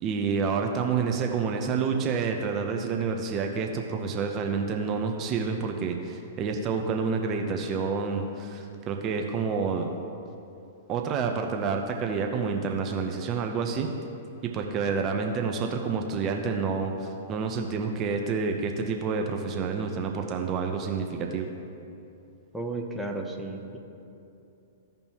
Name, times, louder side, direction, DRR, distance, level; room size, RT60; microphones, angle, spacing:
voice 1, 0.0-9.9 10.9-13.9 14.5-21.5, right 5 dB, 35° right, 3 dB, 0.7 m, -28 dB
voice 2, 22.5-23.8, right 2 dB, ahead, 1 dB, 0.9 m, -33 dB
15.5 x 5.3 x 3.0 m, 2.7 s
hypercardioid pair, 120°, 0 cm